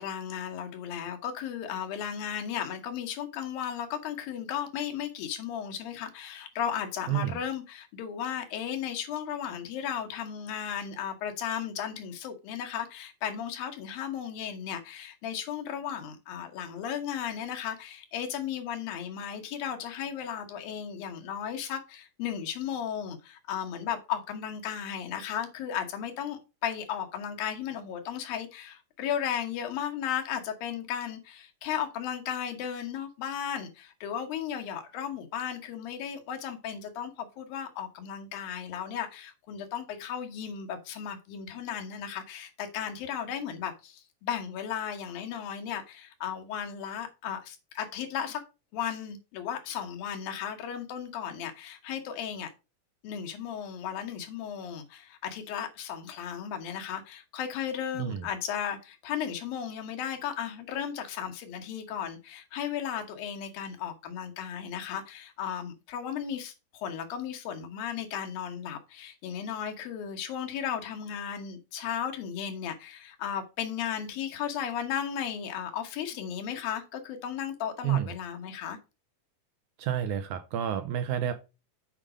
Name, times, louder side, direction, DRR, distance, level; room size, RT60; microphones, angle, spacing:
voice 1, 0.0-48.4 48.7-52.5 53.0-78.8, left 9 dB, 85° left, 3.1 m, -35 dB
voice 2, 7.1-7.4 57.9-58.3 77.8-78.1 79.8-81.3, right 10 dB, 80° right, 1.8 m, -29 dB
7.5 x 5.0 x 4.9 m
omnidirectional pair, 4.0 m